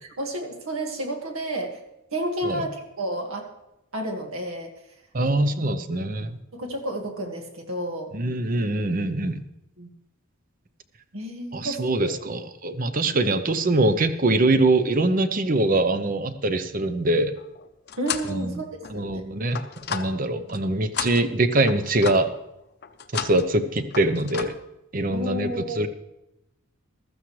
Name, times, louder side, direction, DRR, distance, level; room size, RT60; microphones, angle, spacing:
voice 1, 0.0-1.8 2.1-3.5 3.9-4.7 5.2-5.5 6.5-8.1 9.8-9.9 11.1-12.1 13.0-13.2 18.0-18.7 18.9-19.2 25.1-25.8, right 1 dB, 75° right, 3 dB, 1.8 m, -31 dB
voice 2, 5.1-6.4 8.1-9.4 11.5-17.3 18.3-18.6 18.9-19.6 19.9-22.3 23.1-24.5 24.9-25.9, right 2 dB, 40° right, 11 dB, 0.7 m, -23 dB
sound 1, 17.4-18.4 18.8-20.6 20.9-22.4 22.8-23.5 23.8-24.5, left 7 dB, 50° left, 0.7 m, -33 dB
15.0 x 13.0 x 3.2 m, 0.88 s
head